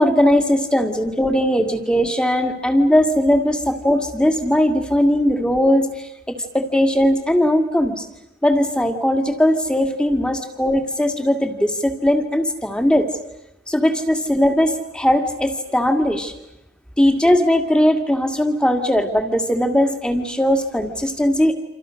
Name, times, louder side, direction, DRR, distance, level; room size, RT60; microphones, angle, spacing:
voice 1, 0.0-8.1 8.4-13.1 13.7-16.3 17.0-21.5, equal, 5° left, 6 dB, 2.1 m, -19 dB
28.5 x 27.0 x 6.4 m, 0.89 s
head